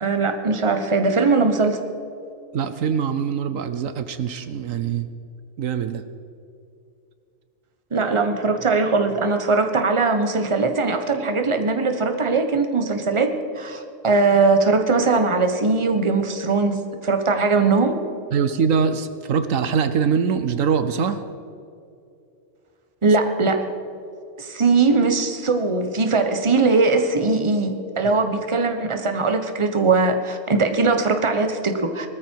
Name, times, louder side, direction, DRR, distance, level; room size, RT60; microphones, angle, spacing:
voice 1, 0.0-1.8 7.9-18.0 23.0-23.6 24.4-32.1, right 3 dB, 25° right, 6 dB, 1.2 m, -20 dB
voice 2, 2.5-5.1 5.6-6.0 18.3-21.2, right 6 dB, 75° right, 11 dB, 1.2 m, -23 dB
20.0 x 13.5 x 4.6 m, 2.6 s
omnidirectional pair, 1.4 m